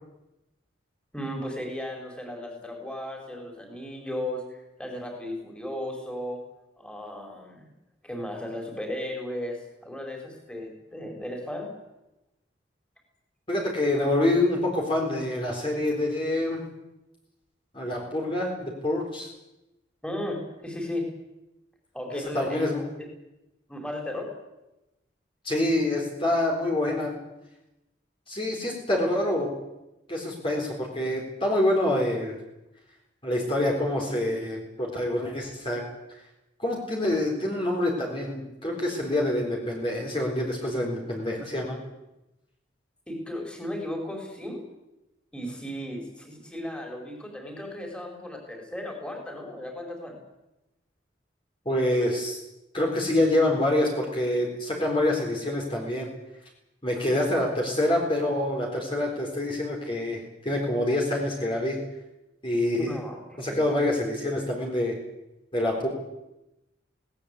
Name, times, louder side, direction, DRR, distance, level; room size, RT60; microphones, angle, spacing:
voice 1, 1.1-6.4 6.8-7.7 8.0-11.7 20.0-21.1 21.9-22.8 23.7-24.3 43.1-44.6 45.3-50.2 62.8-63.6, left 1 dB, 5° left, 1 dB, 4.8 m, -35 dB
voice 2, 13.5-16.6 17.7-19.3 22.1-22.9 25.4-27.2 28.3-29.6 30.1-32.4 33.2-35.8 36.6-41.8 51.7-52.4 52.7-56.1 56.8-61.8 62.4-63.0 63.4-65.0 65.5-65.9, left 1 dB, 30° left, -1 dB, 4.1 m, -26 dB
20.0 x 18.5 x 8.4 m, 0.95 s
head